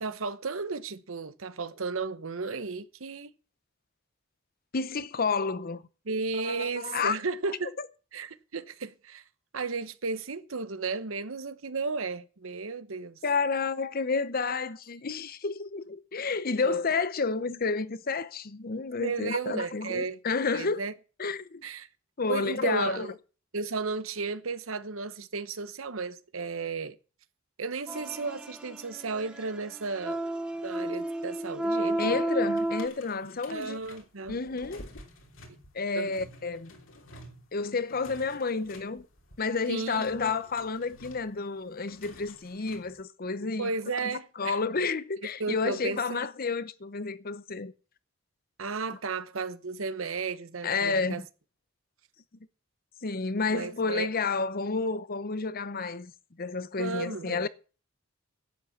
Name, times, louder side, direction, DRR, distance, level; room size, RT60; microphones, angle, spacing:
voice 1, 0.0-3.3 6.0-7.7 8.1-9.2 9.5-13.2 16.6-16.8 19.0-20.2 20.5-20.9 21.6-21.9 22.3-23.1 23.5-27.0 27.6-30.2 30.6-32.2 33.5-34.4 35.9-36.2 39.7-40.1 43.6-44.6 45.4-46.3 48.6-51.2 53.5-54.1 56.8-57.5, right 4 dB, 80° right, 1.0 m, -34 dB
voice 2, 4.7-5.8 6.4-7.2 13.2-20.8 21.2-21.6 22.2-23.1 32.0-33.8 34.3-35.0 35.7-36.7 37.5-39.1 39.4-43.7 44.4-47.7 50.6-51.2 53.0-56.1 56.4-57.5, left 4 dB, 45° left, 0.8 m, -30 dB
sound 1, 27.9-32.9, right 1 dB, 5° right, 1.1 m, -32 dB
sound 2, 32.6-43.0, left 1 dB, 70° left, 3.2 m, -51 dB
11.5 x 8.3 x 7.2 m
head